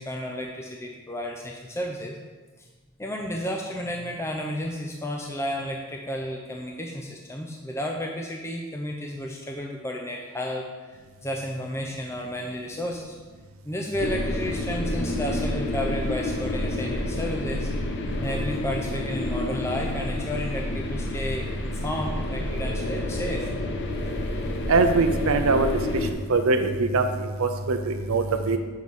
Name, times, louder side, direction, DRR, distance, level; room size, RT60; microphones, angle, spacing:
voice 1, 0.0-2.2 2.6-2.7 3.0-10.7 11.2-13.2 13.6-17.7 18.2-23.5, equal, 15° left, 1 dB, 0.6 m, -32 dB
sound 1, 14.0-26.1, left 1 dB, 55° left, 1.0 m, -29 dB
voice 2, 24.7-25.7 26.3-28.6, right 3 dB, 70° right, 5 dB, 0.6 m, -22 dB
7.3 x 5.5 x 6.3 m, 1.4 s
head